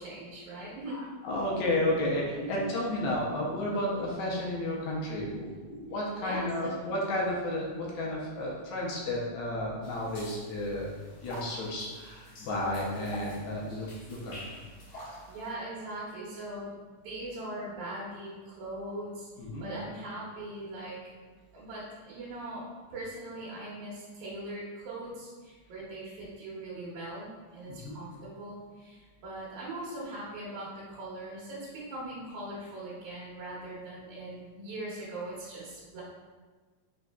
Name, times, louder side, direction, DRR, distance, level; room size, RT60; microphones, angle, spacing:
voice 1, 0.0-1.0 1.3-1.4 2.3-2.7 6.2-6.8 15.3-16.7 17.0-19.3 19.6-21.1 21.5-36.0, right 1 dB, 80° right, -7 dB, 2.3 m, -40 dB
voice 2, 0.9-10.9 11.2-14.4 19.4-19.7 27.7-28.0, left 1 dB, 80° left, -3 dB, 2.0 m, -32 dB
sound 1, 9.8-15.5, left 1 dB, 55° left, 1.9 m, -47 dB
4.9 x 3.6 x 2.2 m, 1.4 s
omnidirectional pair, 3.4 m